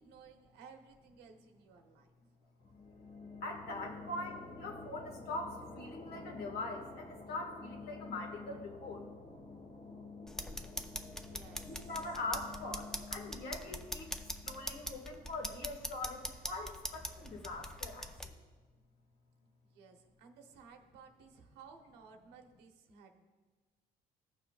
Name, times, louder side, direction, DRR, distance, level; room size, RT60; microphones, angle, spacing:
voice 1, 0.0-2.1 11.1-11.9 19.7-23.3, right 5 dB, 90° right, 4 dB, 1.0 m, -57 dB
sound 1, 2.6-16.0, left 3 dB, 45° left, 1.4 m, -50 dB
voice 2, 3.4-9.1 11.6-18.3, left 2 dB, 65° left, 1 dB, 1.6 m, -42 dB
sound 2, 10.3-18.3, equal, 5° left, 0.5 m, -43 dB
15.5 x 5.8 x 2.4 m, 1.3 s
cardioid pair, 110°, 17 cm